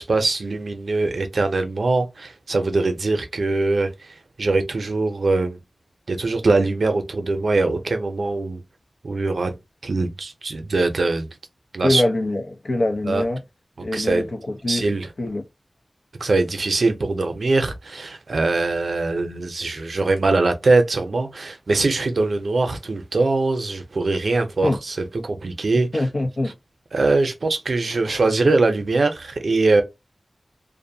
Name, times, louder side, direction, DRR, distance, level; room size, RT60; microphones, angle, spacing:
voice 1, 0.0-5.6 6.1-8.6 9.0-9.5 9.8-11.3 11.7-12.0 13.1-13.2 13.9-14.3 14.7-15.1 16.2-25.9 26.9-29.8, right 3 dB, 90° right, 0.5 m, -22 dB
voice 2, 11.8-13.4 13.8-14.8 15.2-15.4 24.6-24.8 25.9-26.5, left 1 dB, 70° left, 0.6 m, -23 dB
2.5 x 2.1 x 2.6 m
wide cardioid pair, 70°, 0 cm